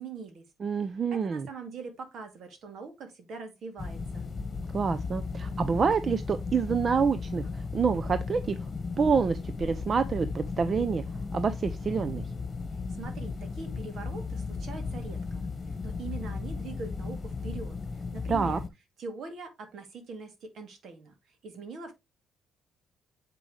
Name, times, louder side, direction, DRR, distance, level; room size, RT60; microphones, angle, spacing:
voice 1, 0.0-0.4 1.1-4.3 12.9-18.6 19.0-21.9, right 4 dB, 65° right, 2.2 m, -43 dB
voice 2, 0.6-1.5 4.7-8.7 9.0-11.0 11.3-12.2 18.3-18.6, right 5 dB, 45° right, 0.6 m, -27 dB
sound 1, 3.8-18.7, left 4 dB, 35° left, 1.4 m, -35 dB
7.5 x 5.3 x 3.3 m
cardioid pair, 90°, 0 cm